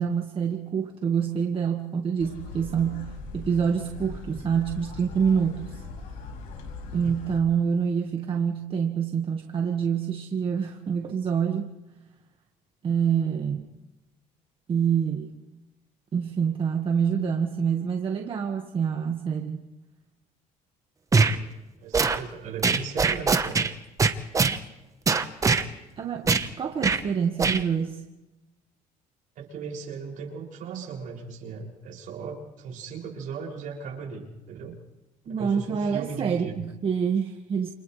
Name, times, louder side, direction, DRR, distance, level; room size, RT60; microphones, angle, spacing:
voice 1, 0.0-5.8 6.9-11.7 12.8-13.7 14.7-15.3 16.1-19.6 26.0-28.0 35.3-37.7, right 7 dB, 40° right, 3 dB, 1.7 m, -26 dB
sound 1, 2.2-7.4, left 3 dB, 80° left, 5.1 m, -40 dB
sound 2, 21.1-21.4 21.9-22.2 22.6-23.7 24.0-24.6 25.1-25.6 26.3-26.5 26.8-27.0 27.4-27.6, right 4 dB, 20° right, 1.1 m, -22 dB
voice 2, 21.8-23.7 29.3-34.8 35.3-36.6, right 5 dB, 65° right, 0 dB, 6.7 m, -37 dB
29.5 x 28.5 x 3.3 m, 1.0 s
cardioid pair, 130°, 14 cm